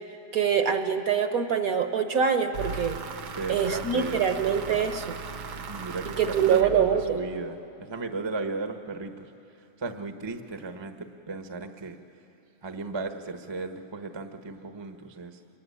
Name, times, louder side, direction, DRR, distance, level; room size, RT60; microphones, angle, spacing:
voice 1, 0.3-3.0 3.5-5.2 6.2-7.2, right 7 dB, 50° right, 8 dB, 1.2 m, -24 dB
sound 1, 2.5-7.5, right 5 dB, 75° right, 2.1 m, -38 dB
voice 2, 3.3-4.8 5.5-12.0 12.6-15.4, right 3 dB, 20° right, 7 dB, 0.7 m, -36 dB
26.5 x 22.5 x 9.8 m, 2.9 s
omnidirectional pair, 2.2 m